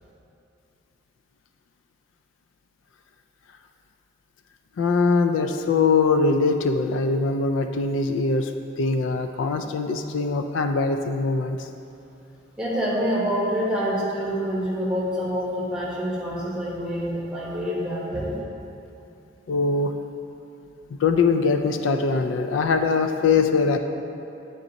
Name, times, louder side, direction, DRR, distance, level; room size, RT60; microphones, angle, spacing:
voice 1, 4.8-8.5 8.8-11.7 19.5-19.9 20.9-23.8, left 4 dB, 85° left, 6 dB, 0.4 m, -22 dB
voice 2, 12.6-18.4, equal, 5° right, -6 dB, 1.1 m, -26 dB
8.4 x 3.9 x 4.0 m, 2.7 s
head